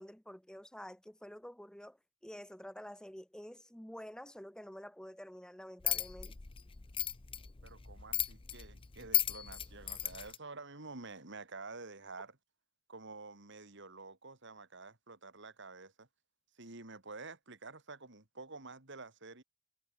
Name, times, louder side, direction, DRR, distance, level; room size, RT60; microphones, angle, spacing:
voice 1, 0.0-2.0 2.2-6.3, equal, 5° left, 1.4 m, -49 dB
sound 1, 5.8-10.4, left 11 dB, 25° left, 0.6 m, -36 dB
voice 2, 7.6-12.4 12.9-16.1 16.6-19.4, right 3 dB, 60° right, 3.3 m, -49 dB
head